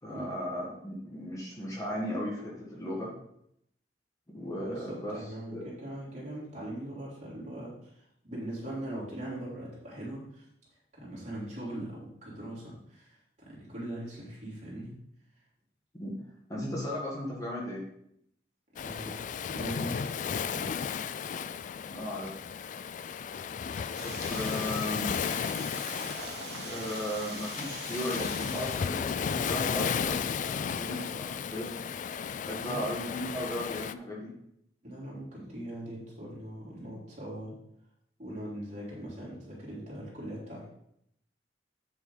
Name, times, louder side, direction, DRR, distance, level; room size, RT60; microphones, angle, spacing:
voice 1, 0.0-3.1 4.3-5.2 5.5-5.6 16.0-16.1 16.5-17.8 21.9-22.4 24.0-25.1 26.5-31.7 32.4-34.3, equal, 20° left, -4 dB, 1.8 m, -36 dB
voice 2, 4.5-10.5 10.9-15.0 18.7-21.0 32.7-32.9 34.8-37.6 38.2-40.6, right 1 dB, 40° right, -6 dB, 3.7 m, -41 dB
Waves surf, 18.8-33.9, left 7 dB, 45° left, 0.3 m, -34 dB
sound 1, 23.9-29.0, right 4 dB, 65° right, 1.5 m, -44 dB
8.5 x 7.2 x 4.0 m, 0.74 s
head